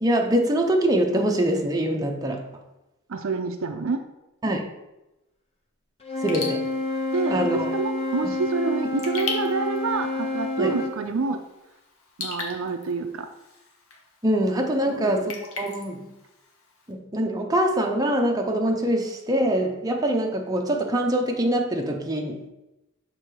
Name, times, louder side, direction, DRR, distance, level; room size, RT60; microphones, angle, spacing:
voice 1, 0.0-2.4 4.4-4.6 6.2-6.6 7.3-7.7 8.2-8.3 10.6-10.7 14.2-16.1 16.9-22.5, right 1 dB, 15° right, 2 dB, 0.7 m, -24 dB
voice 2, 3.1-4.0 7.1-11.4 12.2-13.3 14.9-15.3, right 4 dB, 65° right, 7 dB, 0.5 m, -27 dB
Wind instrument woodwind instrument, 6.0-11.0, left 2 dB, 30° left, 0.8 m, -29 dB
Raindrop / Drip, 6.1-16.9, left 4 dB, 75° left, 1.1 m, -40 dB
6.5 x 3.7 x 4.6 m, 0.96 s
head